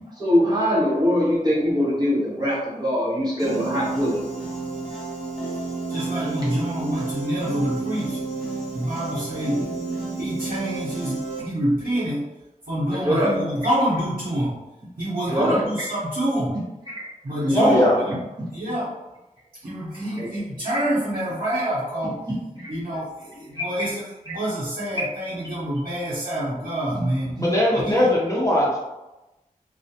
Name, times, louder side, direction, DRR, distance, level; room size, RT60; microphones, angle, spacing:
voice 1, 0.1-4.2 12.9-13.3 15.3-15.6 16.9-17.0 17.4-17.9 20.1-20.3 22.3-22.7 23.5-23.9 24.3-24.4 25.0-25.1 26.9-27.0, equal, 30° right, -8 dB, 0.9 m, -23 dB
Piano, 3.4-11.4, right 3 dB, ahead, 1.0 m, -31 dB
voice 2, 5.9-8.2 8.7-9.6 10.2-12.2 12.7-14.6 15.0-16.5 17.2-18.1 18.5-18.9 19.6-22.1 22.7-27.3 27.7-28.0, right 1 dB, 85° right, -12 dB, 0.9 m, -27 dB
voice 3, 17.5-18.0 27.4-28.8, left 1 dB, 20° left, -5 dB, 0.6 m, -19 dB
2.3 x 2.1 x 2.7 m, 1.0 s
wide cardioid pair, 80°, 15 cm